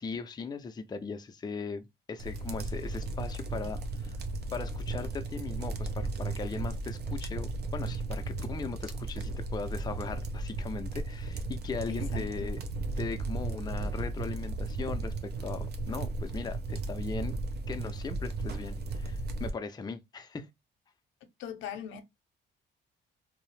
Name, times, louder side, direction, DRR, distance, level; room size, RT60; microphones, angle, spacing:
voice 1, 0.0-4.2 4.5-12.6 13.0-17.4 17.7-20.5, left 4 dB, 20° left, 0.4 m, -39 dB
sound 1, 2.2-19.5, right 3 dB, 55° right, 0.6 m, -35 dB
voice 2, 11.9-12.5 21.4-22.0, left 9 dB, 90° left, 0.6 m, -40 dB
2.7 x 2.0 x 3.1 m
cardioid pair, 90°, 20 cm